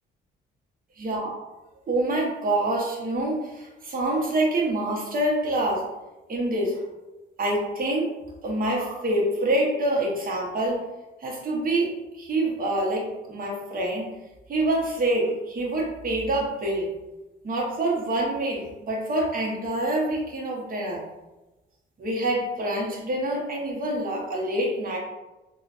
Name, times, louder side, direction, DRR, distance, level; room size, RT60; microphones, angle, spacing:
voice 1, 1.9-5.9 6.3-6.8 7.4-8.1 8.4-10.8 11.2-14.2 14.5-16.9 17.4-21.0 22.0-25.0, right 1 dB, 45° right, -2 dB, 1.0 m, -26 dB
3.8 x 2.3 x 2.4 m, 1.1 s
cardioid pair, 90°, 20 cm